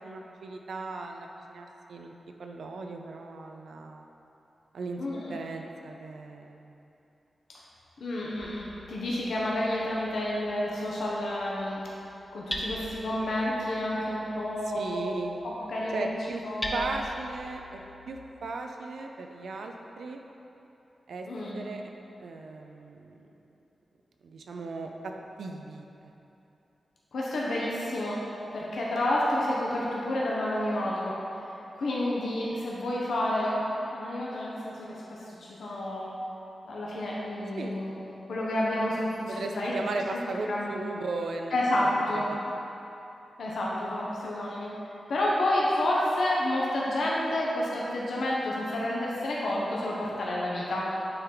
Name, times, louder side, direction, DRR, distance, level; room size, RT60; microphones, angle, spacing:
voice 1, 0.0-2.1 2.4-4.1 4.7-5.0 5.3-6.8 14.7-15.3 15.9-16.4 16.7-17.8 18.1-20.2 21.1-21.3 21.5-21.8 22.2-23.3 24.2-25.1 25.4-25.9 37.6-37.8 39.3-42.2, right 3 dB, 80° right, 3 dB, 0.5 m, -37 dB
voice 2, 5.0-5.4 8.0-11.8 12.3-15.1 15.6-16.1 16.4-16.9 21.3-21.7 27.1-28.3 28.5-31.2 31.7-36.1 36.6-37.9 38.3-39.7 40.5-40.7 41.5-42.3 43.4-44.7 45.1-50.9, left 1 dB, 80° left, -5 dB, 1.1 m, -30 dB
Hammer, 8.4-18.2, left 1 dB, 10° left, 0.6 m, -42 dB
8.8 x 4.5 x 3.9 m, 3.0 s
wide cardioid pair, 170°, 0 cm